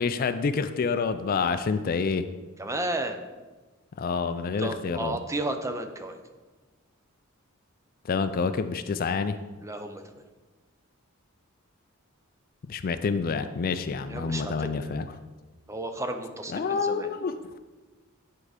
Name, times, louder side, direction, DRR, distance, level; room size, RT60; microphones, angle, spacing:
voice 1, 0.0-2.3 4.0-5.2 8.0-9.4 12.7-15.2 16.5-17.4, left 5 dB, 45° left, 11 dB, 0.3 m, -28 dB
voice 2, 2.6-3.2 4.6-6.2 9.6-10.0 14.1-14.9 15.7-17.1, right 1 dB, 15° right, 7 dB, 0.5 m, -33 dB
8.7 x 4.7 x 4.9 m, 1.3 s
head